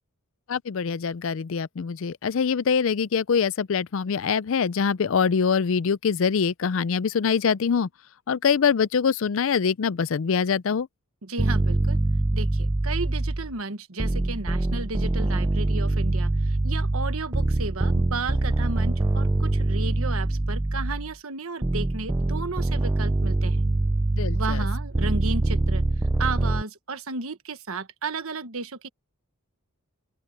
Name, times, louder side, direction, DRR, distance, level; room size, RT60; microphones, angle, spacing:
voice 1, 0.5-7.9 8.3-10.9 24.2-24.7, left 6 dB, 60° left, 0.4 m, -24 dB
voice 2, 11.2-12.0 12.3-23.7 24.3-25.9 26.2-28.9, right 3 dB, 75° right, 1.4 m, -33 dB
sound 1, 11.4-13.5 14.0-21.1 21.6-26.6, right 2 dB, 15° right, 0.3 m, -24 dB
open air
head